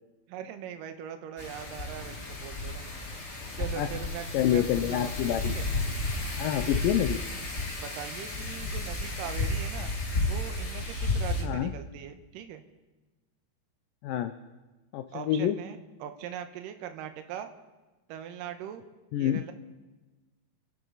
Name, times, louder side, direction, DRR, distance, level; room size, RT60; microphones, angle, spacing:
voice 1, 0.3-2.9 3.5-5.7 7.8-9.9 10.3-12.6 15.1-17.5 18.1-18.8 19.2-19.5, right 9 dB, 70° right, 8 dB, 2.3 m, -41 dB
Wind, 1.4-11.4, left 2 dB, 60° left, 0.7 m, -32 dB
voice 2, 4.3-5.6 6.4-7.2 11.4-11.7 14.0-14.3 14.9-15.6 19.1-19.4, left 11 dB, 90° left, 9 dB, 1.9 m, -27 dB
28.0 x 11.5 x 4.0 m, 1.2 s
omnidirectional pair, 4.7 m